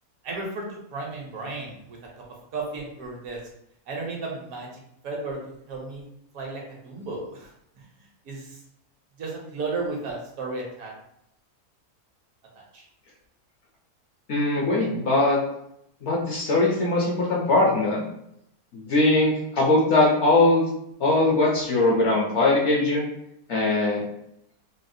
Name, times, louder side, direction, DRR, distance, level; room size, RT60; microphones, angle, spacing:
voice 1, 0.2-0.6 0.9-2.2 2.5-3.4 3.9-4.7 5.0-5.4 5.7-6.0 6.3-7.5 8.2-8.5 9.2-10.9 12.5-12.8, right 3 dB, 70° right, -1 dB, 1.2 m, -33 dB
voice 2, 14.3-15.4 16.0-18.0 18.7-20.7 21.0-23.0 23.5-24.0, left 2 dB, 60° left, -3 dB, 0.8 m, -21 dB
4.0 x 2.1 x 2.6 m, 0.77 s
omnidirectional pair, 1.6 m